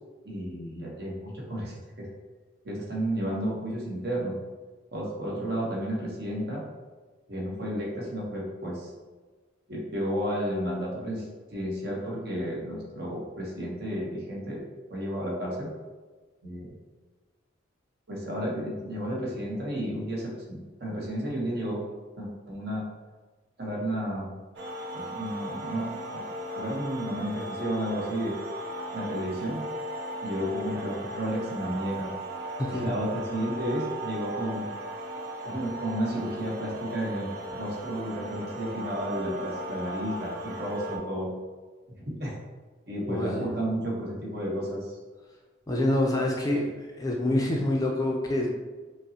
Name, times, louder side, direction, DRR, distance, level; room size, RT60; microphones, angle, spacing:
voice 1, 0.2-2.1 2.6-4.4 4.9-6.6 7.3-8.9 9.7-14.6 14.9-15.7 16.4-16.7 18.1-21.8 22.2-22.8 23.6-24.3 24.9-26.2 26.5-28.4 28.9-29.6 30.2-32.1 32.7-34.7 35.4-41.3 42.2-42.3 42.9-45.0, equal, 55° right, -3 dB, 0.9 m, -32 dB
sound 1, 24.6-41.0, right 1 dB, 75° right, 0.5 m, -37 dB
voice 2, 32.6-33.0 43.1-43.5 45.7-46.7 47.0-48.5, left 1 dB, 20° left, -1 dB, 0.4 m, -26 dB
5.2 x 2.0 x 2.7 m, 1.3 s
head